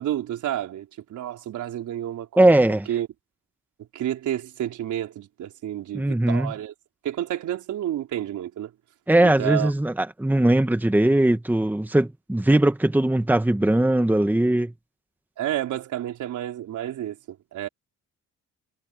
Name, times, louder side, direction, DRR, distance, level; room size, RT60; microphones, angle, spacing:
voice 1, 0.0-2.6 2.9-3.1 3.9-6.7 7.0-8.7 9.2-9.7 15.4-17.7, right 12 dB, 75° right, 4.5 m, -30 dB
voice 2, 2.4-2.9 5.9-6.5 9.1-14.7, right 1 dB, 5° right, 1.5 m, -20 dB
cardioid pair, 90°, 30 cm